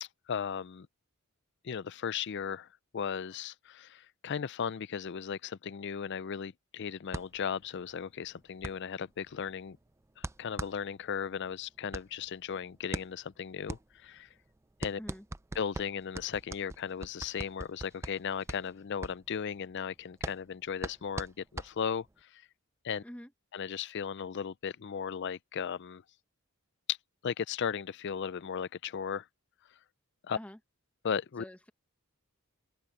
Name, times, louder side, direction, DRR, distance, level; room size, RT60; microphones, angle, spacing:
voice 1, 0.0-0.9 1.6-2.7 2.9-9.8 10.2-14.3 14.8-15.0 15.6-22.5 22.8-23.0 23.5-26.0 26.9-27.0 27.2-29.3 30.2-30.4 31.0-31.4, left 7 dB, 50° left, 0.4 m, -36 dB
sound 1, 7.1-22.2, right 2 dB, 10° right, 0.4 m, -43 dB
voice 2, 31.4-31.7, equal, 5° left, 0.8 m, -46 dB
open air
head